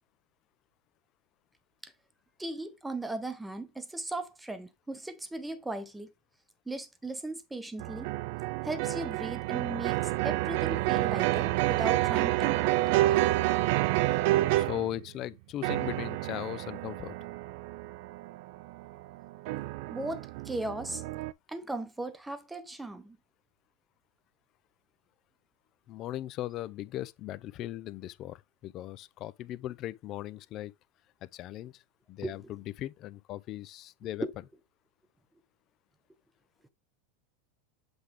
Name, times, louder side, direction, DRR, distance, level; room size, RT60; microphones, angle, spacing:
voice 1, 2.4-6.1 6.7-8.1 8.6-12.8 19.9-21.0 21.5-23.2 32.2-32.4 34.2-34.3, right 2 dB, 5° right, 0.9 m, -37 dB
sound 1, 7.8-15.0 15.6-21.3, right 17 dB, 60° right, 0.4 m, -29 dB
voice 2, 14.5-17.2 25.9-30.7 31.2-31.8 32.1-34.3, left 14 dB, 40° left, 0.4 m, -38 dB
7.9 x 3.4 x 3.6 m
supercardioid pair, 140°, 0 cm